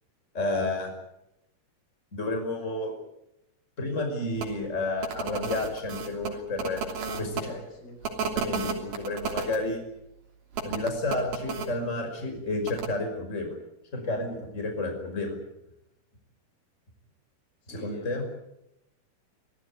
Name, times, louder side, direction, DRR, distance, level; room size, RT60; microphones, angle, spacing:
voice 1, 0.3-0.9 2.1-2.9 3.8-6.8 7.2-7.3 8.4-9.8 10.6-13.5 13.9-15.4 17.7-18.2, left 2 dB, 15° left, 4 dB, 5.6 m, -31 dB
sound 1, 4.4-4.5 5.0-7.4 8.0-9.6 10.5-11.7 12.6-12.9, right 5 dB, 65° right, 4.8 m, -32 dB
voice 2, 7.0-8.1 17.6-18.3, left 2 dB, 75° left, 3 dB, 8.3 m, -43 dB
26.0 x 17.0 x 9.7 m, 0.85 s
omnidirectional pair, 4.5 m